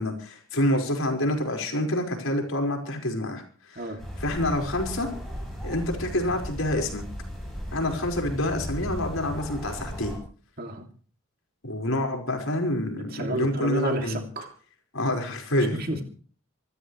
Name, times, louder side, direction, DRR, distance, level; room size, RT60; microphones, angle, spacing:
voice 1, 0.0-3.8 4.2-5.1 5.6-7.0 7.7-10.2 11.6-14.2 14.9-15.8, left 1 dB, 75° left, 2 dB, 5.1 m, -27 dB
sound 1, 4.0-10.2, equal, ahead, 7.9 m, -36 dB
voice 2, 13.1-14.5 15.7-16.0, right 1 dB, 45° right, 4 dB, 2.7 m, -31 dB
26.5 x 14.0 x 3.2 m, 0.42 s
head